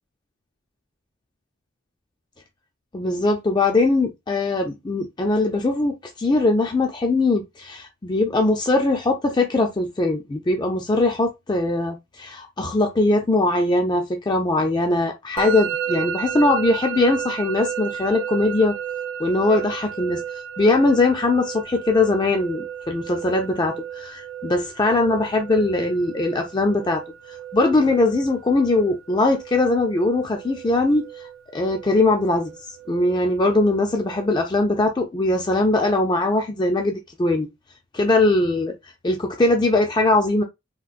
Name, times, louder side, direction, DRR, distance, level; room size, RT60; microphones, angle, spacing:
voice 1, 2.9-18.8 19.2-20.2 20.6-27.0 27.5-32.5 32.9-37.5 37.9-40.4, left 2 dB, 20° left, 0.4 m, -21 dB
Musical instrument, 15.4-34.3, right 9 dB, 75° right, 0.4 m, -33 dB
3.7 x 2.5 x 2.4 m
head